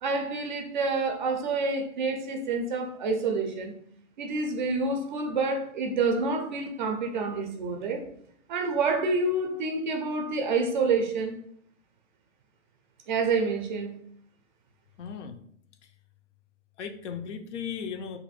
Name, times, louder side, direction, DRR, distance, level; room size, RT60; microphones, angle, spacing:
voice 1, 0.0-3.7 4.2-8.0 8.5-11.3 13.1-13.9, right 3 dB, 40° right, 4 dB, 0.4 m, -28 dB
voice 2, 15.0-15.4 15.8-15.9 16.8-18.2, left 7 dB, 65° left, 6 dB, 0.5 m, -36 dB
2.6 x 2.5 x 4.0 m, 0.66 s
hypercardioid pair, 160°, 40 cm